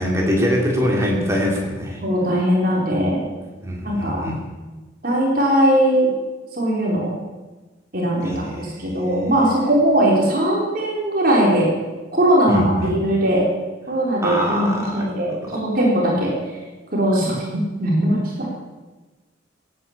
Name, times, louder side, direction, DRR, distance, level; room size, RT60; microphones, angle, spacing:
voice 1, 0.0-2.0 3.6-4.4 8.2-8.9 12.5-12.9 14.2-15.6, equal, 15° right, -1 dB, 3.0 m, -23 dB
voice 2, 2.0-3.2 3.8-4.2 5.0-6.1 6.6-7.1 7.9-11.7 12.1-13.4 13.9-16.3 16.9-18.2, right 1 dB, 45° right, -3 dB, 3.8 m, -19 dB
16.5 x 9.4 x 7.3 m, 1.2 s
head